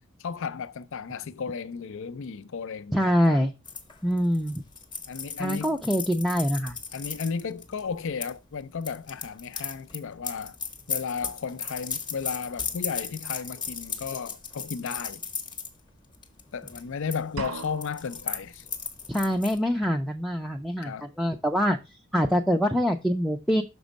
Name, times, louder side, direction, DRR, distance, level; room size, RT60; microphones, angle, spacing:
voice 1, 0.2-3.4 5.1-5.8 6.9-10.6 10.9-15.2 16.5-18.7 20.8-21.1, left 6 dB, 65° left, 0.5 m, -34 dB
voice 2, 2.9-3.5 4.0-4.6 5.4-6.8 19.1-21.8 22.1-23.6, equal, ahead, 0.4 m, -24 dB
sound 1, 3.7-8.3 8.8-15.7 16.1-16.4 16.7-17.2 17.4-19.6, left 6 dB, 20° left, 0.9 m, -36 dB
sound 2, 17.4-18.3, right 3 dB, 85° right, 0.8 m, -37 dB
6.1 x 4.4 x 5.2 m
head